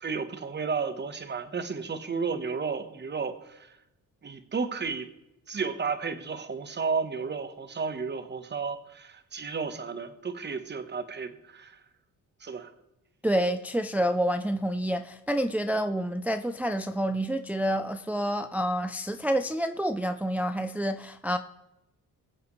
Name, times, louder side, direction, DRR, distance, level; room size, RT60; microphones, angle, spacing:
voice 1, 0.0-3.7 4.2-5.1 5.5-11.8 12.4-12.7, right 5 dB, 35° right, 1.2 m, -33 dB
voice 2, 13.2-21.4, equal, 5° right, 0.4 m, -28 dB
22.5 x 7.7 x 3.2 m
cardioid pair, 110°, 32 cm